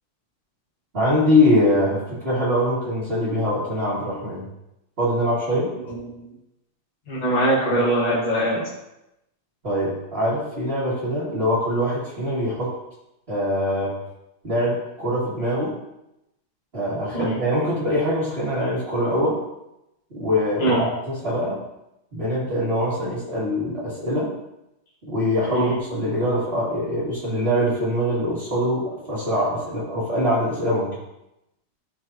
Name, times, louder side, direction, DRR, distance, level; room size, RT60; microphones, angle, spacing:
voice 1, 0.9-4.5 5.0-5.7 9.6-12.7 13.3-13.9 14.4-15.7 16.7-19.4 20.1-21.6 22.1-24.3 25.0-30.9, left 1 dB, 35° right, -12 dB, 2.5 m, -23 dB
voice 2, 7.1-8.6 17.1-17.4 20.6-20.8 25.5-25.7, right 1 dB, 25° left, -6 dB, 1.7 m, -22 dB
13.0 x 4.6 x 2.9 m, 0.89 s
omnidirectional pair, 1.8 m